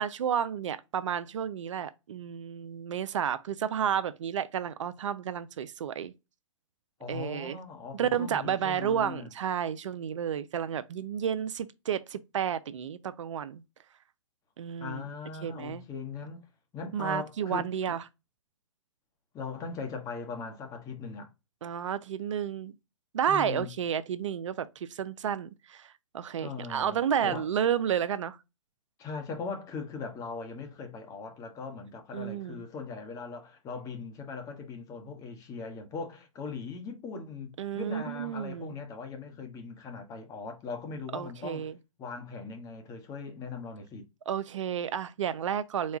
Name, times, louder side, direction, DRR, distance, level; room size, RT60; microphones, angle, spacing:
voice 1, 0.0-6.1 7.1-7.6 7.9-13.6 14.6-15.0 15.4-15.8 16.9-18.0 21.6-22.7 23.1-28.4 32.1-32.6 37.6-38.8 41.1-41.7 44.3-46.0, right 8 dB, 65° right, 0.4 m, -31 dB
voice 2, 7.0-9.3 14.8-16.4 16.7-18.0 19.3-21.3 23.3-23.7 26.4-27.5 29.0-41.7 42.0-44.0, left 5 dB, 20° left, 0.9 m, -40 dB
4.2 x 2.3 x 4.6 m
hypercardioid pair, 125°, 17 cm